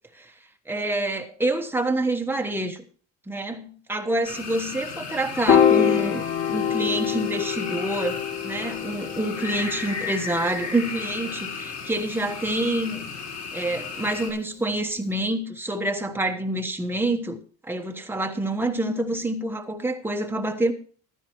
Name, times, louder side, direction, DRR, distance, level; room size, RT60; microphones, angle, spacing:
voice 1, 0.7-2.8 3.3-8.2 8.4-13.0 13.5-17.4 17.6-20.7, right 1 dB, 5° right, 1.2 m, -27 dB
sound 1, 4.2-14.3, left 5 dB, 60° left, 5.0 m, -35 dB
Piano, 5.5-11.9, left 9 dB, 40° left, 3.0 m, -25 dB
15.5 x 12.5 x 3.1 m
cardioid pair, 170°, 31 cm